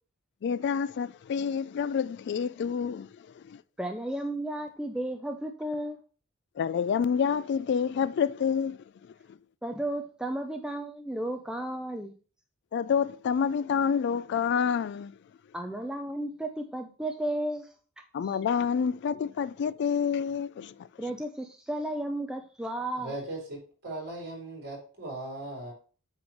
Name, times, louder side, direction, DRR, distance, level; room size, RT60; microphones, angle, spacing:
voice 1, 0.4-3.6 6.6-9.4 12.7-15.1 18.1-21.1, left 7 dB, 55° left, 0.3 m, -28 dB
voice 2, 3.8-6.0 9.6-12.1 15.5-17.7 18.2-18.4 21.0-23.1, right 1 dB, 5° right, 0.5 m, -33 dB
voice 3, 23.0-25.7, right 2 dB, 55° right, 4.7 m, -38 dB
8.4 x 3.3 x 6.3 m
head